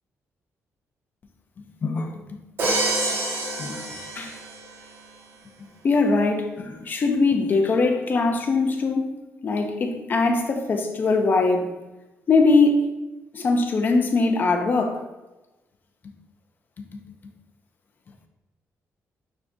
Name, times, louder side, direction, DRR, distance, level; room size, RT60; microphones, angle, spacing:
voice 1, 1.8-2.1 2.6-2.7 3.6-3.8 4.2-4.4 5.8-9.2 9.4-11.7 12.3-12.9 13.3-15.0 16.8-17.0, left 3 dB, 40° left, 0.5 m, -21 dB
Crash cymbal, 2.6-4.8, right 2 dB, 55° right, 0.8 m, -27 dB
6.1 x 3.3 x 2.6 m
cardioid pair, 155°, 5 cm